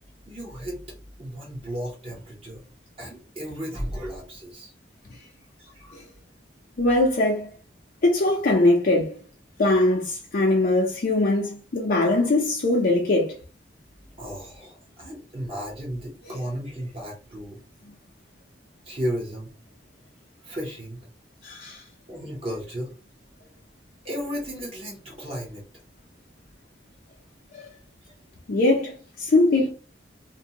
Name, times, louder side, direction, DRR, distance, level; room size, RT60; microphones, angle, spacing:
voice 1, 0.3-0.9 1.2-2.6 3.0-4.7 5.6-6.0 14.2-17.6 18.8-19.5 20.4-21.0 22.1-22.9 24.0-25.7, equal, 30° right, 0.8 m, -34 dB
voice 2, 6.8-7.5 8.0-9.2 9.6-13.4 21.4-21.8 27.6-27.7 28.5-29.7, left 2 dB, 50° left, 0.5 m, -21 dB
2.6 x 2.2 x 2.7 m
head